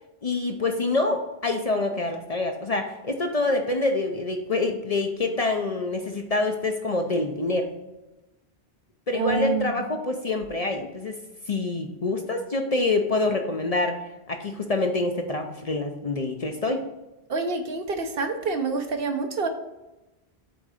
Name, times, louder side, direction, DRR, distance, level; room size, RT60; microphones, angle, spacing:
voice 1, 0.2-7.7 9.1-11.2 11.5-14.0 14.3-16.8, left 2 dB, 45° left, 4 dB, 0.6 m, -26 dB
voice 2, 9.1-9.8 17.3-19.5, right 3 dB, 65° right, 6 dB, 1.0 m, -27 dB
7.9 x 3.8 x 4.8 m, 1.0 s
omnidirectional pair, 1.1 m